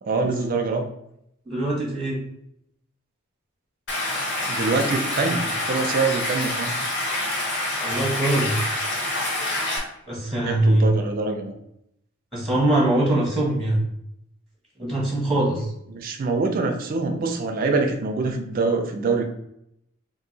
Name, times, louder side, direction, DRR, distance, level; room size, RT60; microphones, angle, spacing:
voice 1, 0.1-0.9 4.5-6.7 10.4-11.5 15.9-19.2, right 3 dB, 40° right, 5 dB, 0.4 m, -24 dB
voice 2, 1.5-2.2 7.8-8.6 10.1-10.9 12.3-13.8 14.8-15.7, right 1 dB, ahead, -4 dB, 0.8 m, -22 dB
Stream, 3.9-9.8, left 1 dB, 55° left, 0.9 m, -26 dB
2.7 x 2.6 x 3.8 m, 0.77 s
head